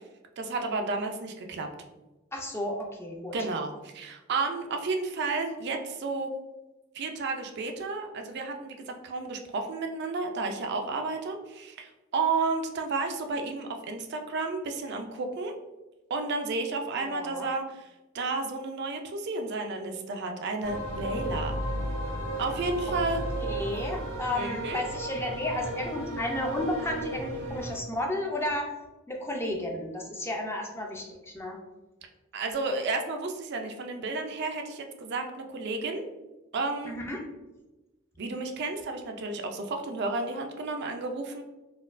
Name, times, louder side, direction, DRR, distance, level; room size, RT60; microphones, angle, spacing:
voice 1, 0.4-1.7 3.3-6.3 6.9-15.5 16.1-17.9 18.1-21.6 22.4-23.2 24.3-24.8 32.3-36.0 36.5-37.0 38.2-41.4, right 3 dB, 55° right, 4 dB, 0.4 m, -32 dB
voice 2, 2.3-3.3 17.0-17.5 23.4-28.7 29.1-31.6 36.9-37.2, left 1 dB, 10° left, 1 dB, 0.4 m, -32 dB
sound 1, 20.6-27.8, right 1 dB, 90° right, 0.9 m, -34 dB
4.2 x 2.3 x 2.4 m, 1.1 s
head